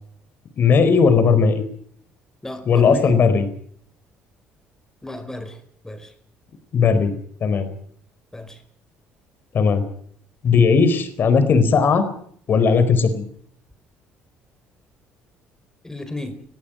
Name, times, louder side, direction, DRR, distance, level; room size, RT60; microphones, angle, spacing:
voice 1, 0.6-1.6 2.7-3.5 6.7-7.1 7.4-7.7 9.5-9.8 10.4-12.1 12.5-13.2, left 5 dB, 50° left, 12 dB, 4.5 m, -17 dB
voice 2, 2.4-3.1 5.0-5.6 5.8-6.1 8.3-8.6 15.8-16.4, left 1 dB, 10° left, 10 dB, 4.8 m, -33 dB
21.5 x 14.5 x 9.1 m, 0.64 s
supercardioid pair, 85°, 4 cm